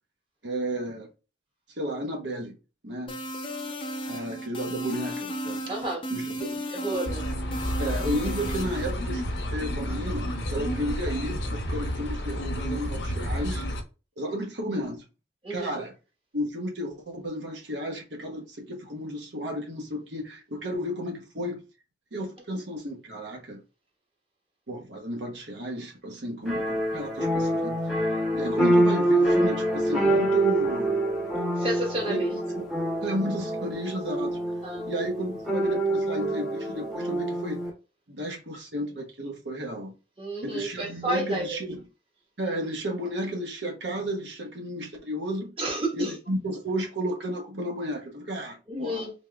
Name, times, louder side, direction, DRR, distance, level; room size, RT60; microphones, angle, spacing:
voice 1, 0.4-1.1 1.8-2.6 2.8-3.2 4.1-5.7 6.1-6.6 7.8-9.2 9.5-13.6 14.2-15.0 15.5-16.0 16.3-21.6 22.1-23.6 24.7-27.8 28.3-31.0 32.1-32.7 33.0-34.4 34.9-37.6 38.1-39.9 40.4-41.8 42.4-45.5 45.9-49.1, equal, 75° right, 1.2 m, -33 dB
sound 1, 3.1-8.9, equal, 30° left, 0.6 m, -34 dB
voice 2, 5.7-6.1 6.7-7.3 15.4-15.8 31.6-32.3 34.6-34.8 40.2-41.6 45.6-46.1 48.7-49.1, right 1 dB, 30° right, 1.4 m, -30 dB
sound 2, 7.0-13.8, equal, 75° left, 0.8 m, -30 dB
sound 3, 26.5-37.7, right 1 dB, ahead, 0.9 m, -26 dB
4.1 x 3.6 x 2.3 m
head